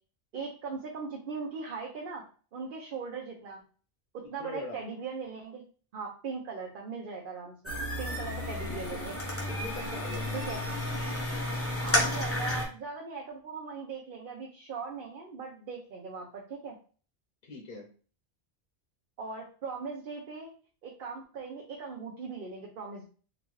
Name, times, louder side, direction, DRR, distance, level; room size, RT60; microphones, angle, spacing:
voice 1, 0.3-2.2 2.5-3.6 4.1-5.6 5.9-9.2 10.3-10.6 11.8-16.8 19.2-20.5 20.8-23.0, right 5 dB, 60° right, -1 dB, 0.8 m, -39 dB
voice 2, 4.4-4.8 8.5-9.1 9.4-10.5 17.4-17.9, left 3 dB, 50° left, 0 dB, 0.8 m, -42 dB
sound 1, 7.7-12.7, left 1 dB, 15° left, 0.7 m, -32 dB
3.9 x 2.3 x 3.1 m, 0.40 s
omnidirectional pair, 1.1 m